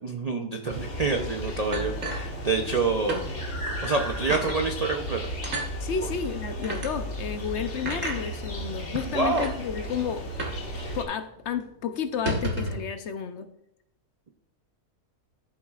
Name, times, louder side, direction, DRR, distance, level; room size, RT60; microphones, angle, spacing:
voice 1, 0.0-3.2 3.8-5.2 6.0-6.1 9.1-9.5, right 4 dB, 80° right, 3 dB, 0.3 m, -27 dB
sound 1, 0.7-11.0, equal, 45° left, 1.9 m, -34 dB
sound 2, 1.7-2.8 3.1-3.3 3.7-3.8 4.3-4.6 5.4-5.7 6.6-6.9 7.9-8.2 9.0-9.1 9.3-9.5 10.4-10.7 10.9-11.0 11.4-11.5 12.1-12.9, right 2 dB, 55° right, 1.8 m, -31 dB
voice 2, 5.8-10.2 10.9-13.5, left 7 dB, 60° left, 9 dB, 0.7 m, -31 dB
13.5 x 7.3 x 2.4 m, 0.79 s
omnidirectional pair, 1.7 m